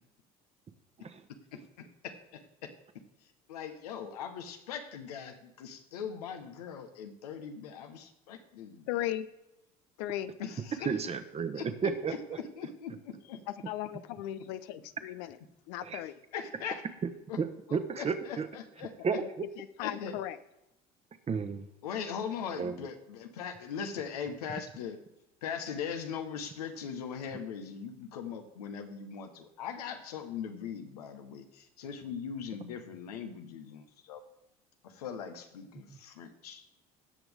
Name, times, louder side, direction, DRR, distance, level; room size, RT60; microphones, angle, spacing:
voice 1, 1.5-2.7 3.5-8.9 10.4-10.9 11.5-11.7 12.1-13.4 16.3-16.9 17.3-17.4 17.7-18.9 19.8-20.1 21.8-25.0 25.4-34.2 34.8-36.6, left 7 dB, 90° left, 7 dB, 1.1 m, -40 dB
voice 2, 8.9-9.3 10.0-10.3 13.5-15.4 15.7-16.2 19.1-19.3 19.6-20.4, left 13 dB, 70° left, 13 dB, 0.6 m, -37 dB
voice 3, 10.8-12.1 15.8-16.0 17.4-18.5 19.0-19.4 21.3-21.6 22.6-22.8, right 6 dB, 35° right, 9 dB, 1.1 m, -32 dB
17.5 x 6.1 x 3.5 m, 0.90 s
hypercardioid pair, 75°, 19 cm